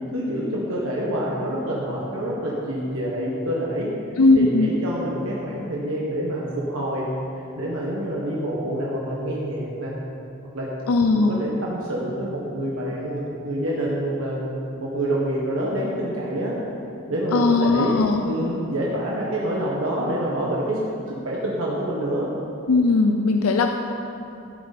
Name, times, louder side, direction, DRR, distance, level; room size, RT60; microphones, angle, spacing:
voice 1, 0.1-3.9 4.4-7.1 7.6-9.9 10.5-10.7 11.1-16.6 17.1-20.8 21.1-22.3, right 1 dB, 75° right, -5 dB, 1.5 m, -27 dB
voice 2, 4.2-4.7 10.9-11.4 17.3-18.2 22.7-23.7, left 3 dB, 90° left, 4 dB, 0.6 m, -18 dB
15.0 x 8.2 x 4.2 m, 2.7 s
head